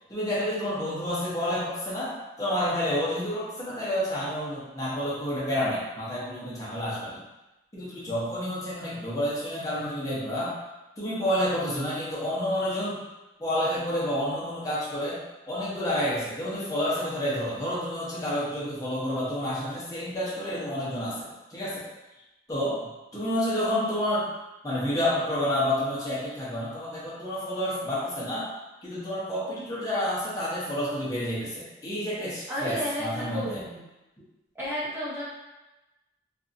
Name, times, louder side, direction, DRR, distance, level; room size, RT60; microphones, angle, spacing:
voice 1, 0.1-7.2 7.7-10.5 11.0-13.0 13.4-21.8 22.5-24.3 24.6-28.5 28.8-33.6, left 1 dB, 20° left, -8 dB, 0.8 m, -29 dB
voice 2, 32.5-33.8 34.6-35.2, equal, 15° right, -10 dB, 1.0 m, -32 dB
2.6 x 2.5 x 2.5 m, 1.0 s
head